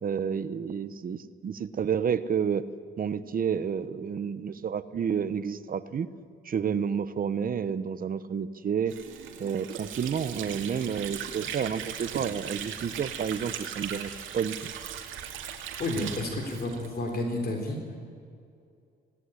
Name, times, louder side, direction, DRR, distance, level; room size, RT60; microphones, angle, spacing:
voice 1, 0.0-2.6 3.0-6.1 6.4-9.0 9.4-14.7, right 7 dB, 45° right, 14 dB, 0.9 m, -30 dB
Water / Sink (filling or washing), 8.9-17.4, right 8 dB, 80° right, 2.3 m, -38 dB
voice 2, 15.8-17.8, left 1 dB, 50° left, 3 dB, 3.5 m, -31 dB
18.0 x 17.5 x 10.0 m, 2.4 s
cardioid pair, 90°, 20 cm